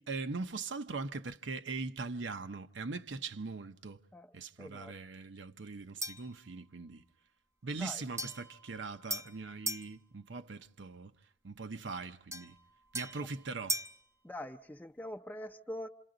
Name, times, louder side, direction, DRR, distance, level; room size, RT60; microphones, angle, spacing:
voice 1, 0.0-4.0 4.3-7.0 7.6-11.1 11.4-12.6 12.9-13.8, right 4 dB, 75° right, 0.8 m, -41 dB
voice 2, 4.6-4.9 7.8-8.0 14.2-15.9, left 1 dB, 10° left, 0.7 m, -43 dB
sound 1, 6.0-6.4 8.2-9.9 12.3-14.0, right 1 dB, 15° right, 0.8 m, -39 dB
28.5 x 27.5 x 3.9 m
head